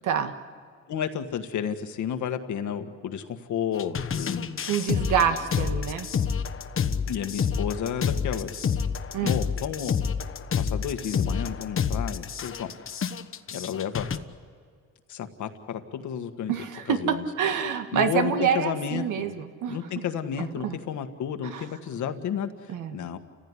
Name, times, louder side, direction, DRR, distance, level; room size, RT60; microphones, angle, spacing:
voice 1, 0.9-4.5 7.1-8.8 9.2-10.0 10.6-12.7 13.5-14.1 15.1-17.2 17.9-19.3 19.6-23.2, left 8 dB, 75° left, 8 dB, 1.7 m, -32 dB
sound 1, 3.7-14.2, left 6 dB, 45° left, 1.2 m, -28 dB
voice 2, 4.7-6.1 9.1-9.4 16.5-19.9 20.4-20.8 21.5-21.7 22.7-23.0, right 7 dB, 85° right, 7 dB, 1.8 m, -27 dB
30.0 x 15.5 x 9.9 m, 2.1 s
cardioid pair, 90°, 30 cm